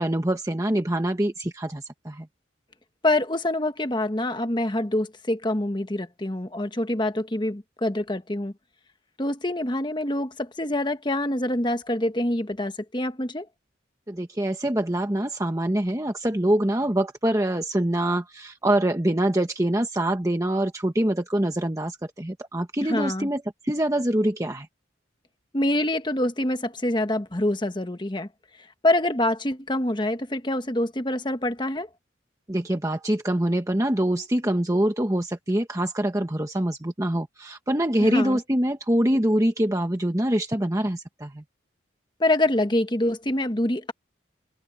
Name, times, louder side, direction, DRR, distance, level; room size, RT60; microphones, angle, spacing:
voice 1, 0.0-2.3 14.1-24.7 32.5-41.4, right 1 dB, 15° right, 1.1 m, -24 dB
voice 2, 3.0-8.5 9.2-13.5 22.9-23.3 25.5-28.3 28.6-31.9 38.0-38.4 42.2-43.9, left 1 dB, 25° left, 1.2 m, -25 dB
head